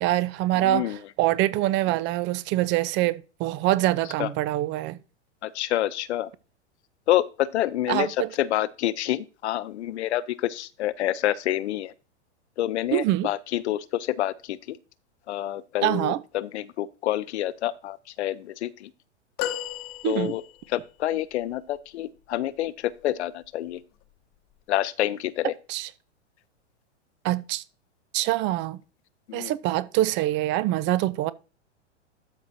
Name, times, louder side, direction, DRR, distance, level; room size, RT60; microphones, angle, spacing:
voice 1, 0.0-5.0 7.9-8.3 12.9-13.3 15.8-16.2 20.0-20.3 25.7-25.9 27.2-27.6 28.1-28.8 29.3-31.3, right 15 dB, 30° right, 0.6 m, -25 dB
voice 2, 0.6-1.0 4.2-4.3 5.4-6.3 7.1-8.1 8.4-11.9 12.6-14.8 15.3-18.9 20.0-20.4 20.7-23.8 24.7-25.5 29.3-29.5, left 13 dB, 70° left, 0.7 m, -28 dB
sound 1, 19.4-20.8 21.5-21.6, left 12 dB, 40° left, 1.0 m, -33 dB
12.5 x 6.0 x 2.7 m
hypercardioid pair, 110°, 36 cm